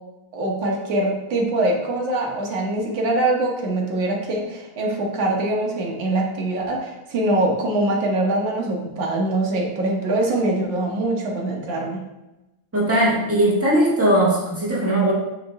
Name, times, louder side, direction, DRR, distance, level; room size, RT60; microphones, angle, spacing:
voice 1, 0.3-12.0, right 2 dB, 65° right, -1 dB, 1.7 m, -23 dB
voice 2, 12.7-15.1, right 1 dB, 10° right, -7 dB, 1.3 m, -19 dB
8.5 x 3.2 x 3.5 m, 0.99 s
omnidirectional pair, 2.3 m